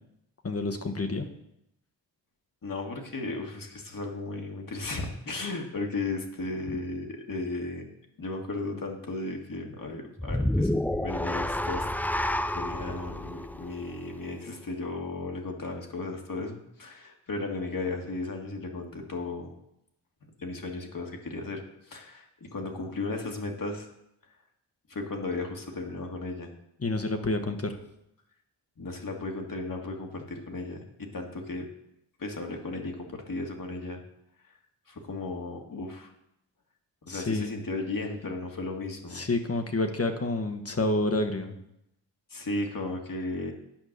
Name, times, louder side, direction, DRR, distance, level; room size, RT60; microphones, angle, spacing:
voice 1, 0.4-1.3 26.8-27.8 37.1-37.5 39.1-41.5, left 2 dB, 35° left, 6 dB, 1.2 m, -29 dB
voice 2, 2.6-7.8 8.2-11.9 12.5-19.6 20.4-23.9 24.9-26.5 28.8-31.7 32.2-34.0 34.9-36.1 37.0-39.3 42.3-43.5, left 2 dB, 50° left, 2 dB, 1.8 m, -35 dB
sound 1, 10.2-14.5, left 1 dB, 5° left, 0.4 m, -30 dB
8.9 x 5.2 x 6.6 m, 0.81 s
cardioid pair, 55°, 43 cm